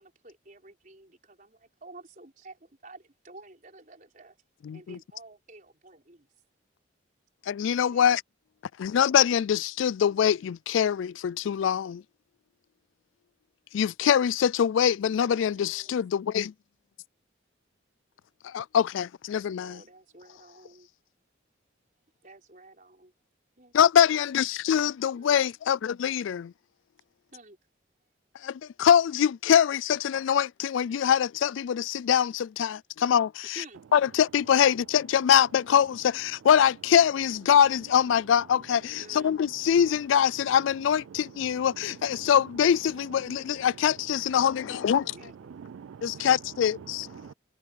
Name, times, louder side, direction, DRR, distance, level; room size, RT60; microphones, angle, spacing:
voice 1, 0.0-4.4 4.7-6.3 7.9-8.1 15.1-15.9 19.5-20.9 22.2-23.1 23.6-23.7 25.1-25.4 27.3-27.6 33.5-33.8 39.0-39.4 44.6-44.9 45.1-45.5 46.1-46.4, right 2 dB, 40° right, 4.8 m, -51 dB
voice 2, 4.7-5.0 7.5-8.2 8.8-12.0 13.7-16.5 18.4-19.8 23.7-26.5 28.4-33.5 33.9-45.0 46.0-47.1, left 8 dB, 75° left, 0.3 m, -24 dB
voice 3, 41.1-42.3 43.2-43.7 44.3-46.4 46.8-47.3, right 7 dB, 80° right, 0.3 m, -46 dB
head